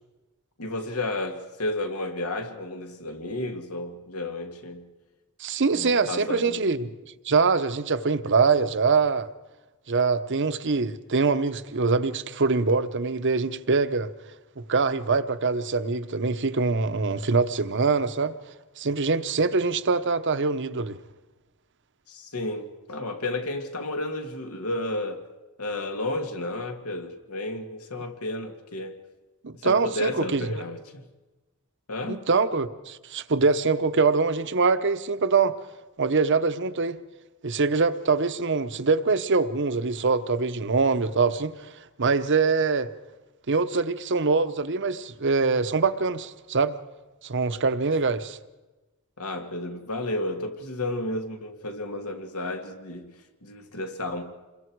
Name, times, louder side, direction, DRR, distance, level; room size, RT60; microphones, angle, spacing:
voice 1, 0.6-4.9 5.7-6.6 22.1-25.2 25.6-29.0 29.5-31.0 31.9-32.2 49.2-53.1 53.4-54.2, left 2 dB, 80° left, 2.3 m, -32 dB
voice 2, 5.4-6.9 7.2-9.3 9.9-14.1 14.7-18.3 18.8-21.0 29.4-30.5 32.1-35.5 36.0-37.0 37.4-41.5 42.0-42.9 43.5-46.7 47.2-48.4, right 4 dB, 55° right, 0.9 m, -24 dB
28.0 x 22.0 x 4.7 m
head